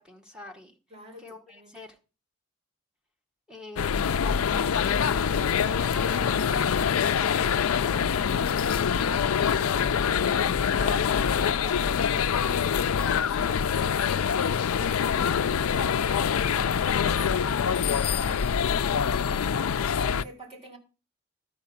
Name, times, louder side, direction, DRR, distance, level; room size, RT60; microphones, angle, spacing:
voice 1, 0.0-0.7 1.2-2.0 3.5-11.1, equal, 5° right, 1.5 m, -44 dB
voice 2, 0.9-1.7 11.5-15.3 16.0-19.3 20.0-20.8, right 1 dB, 30° right, 3.7 m, -48 dB
sound 1, 3.8-20.2, left 7 dB, 90° left, 0.4 m, -25 dB
13.0 x 5.2 x 7.1 m
head